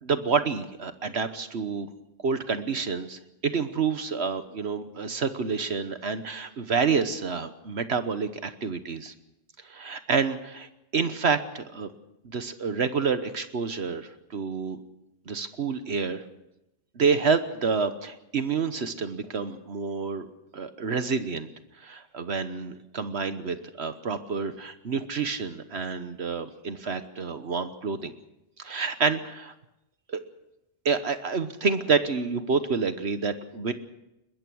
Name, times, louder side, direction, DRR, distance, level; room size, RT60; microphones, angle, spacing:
voice 1, 0.0-1.9 2.2-9.1 9.6-11.9 12.2-14.8 15.3-16.2 16.9-20.3 20.5-21.5 21.8-28.1 28.6-29.5 30.1-30.2 30.8-33.7, right 5 dB, 60° right, 10 dB, 1.3 m, -28 dB
21.5 x 21.0 x 6.3 m, 0.91 s
omnidirectional pair, 1.2 m